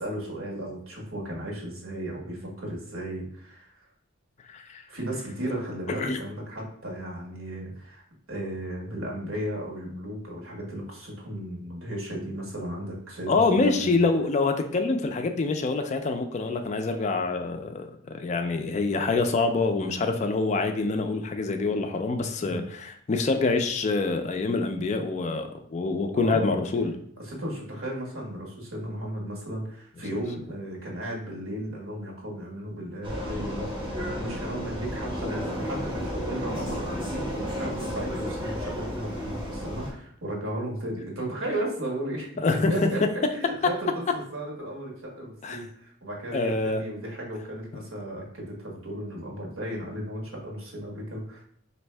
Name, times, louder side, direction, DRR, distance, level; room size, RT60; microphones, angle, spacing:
voice 1, 0.0-3.9 4.9-8.0 8.3-14.0 22.4-22.7 26.1-26.6 27.2-42.3 42.7-51.4, right 1 dB, 80° right, -2 dB, 1.3 m, -35 dB
voice 2, 13.3-26.9 42.4-42.9 45.4-45.6 46.3-46.8, left 3 dB, 35° left, 6 dB, 0.3 m, -26 dB
Vehicle, 33.0-39.9, equal, 25° right, 1.2 m, -33 dB
4.3 x 2.7 x 3.2 m, 0.64 s
head